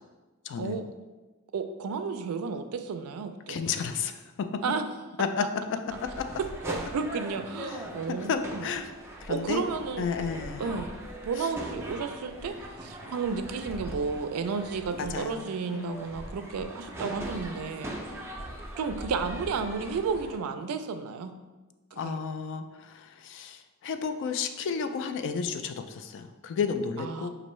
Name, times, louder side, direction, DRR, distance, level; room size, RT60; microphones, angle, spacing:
voice 1, 0.4-0.8 3.5-4.6 5.2-6.3 7.7-7.8 8.3-8.9 9.2-9.6 10.0-10.8 11.4-11.5 15.0-16.1 21.9-27.3, left 6 dB, 55° left, 8 dB, 0.3 m, -32 dB
voice 2, 1.5-3.6 4.6-4.8 6.6-8.7 9.3-10.1 10.6-10.9 11.2-17.9 18.8-21.3 21.9-22.1 27.0-27.3, right 5 dB, 75° right, 8 dB, 0.4 m, -32 dB
sound 1, 5.9-20.4, right 1 dB, 10° right, 0.4 m, -41 dB
5.3 x 2.6 x 3.0 m, 1.2 s
head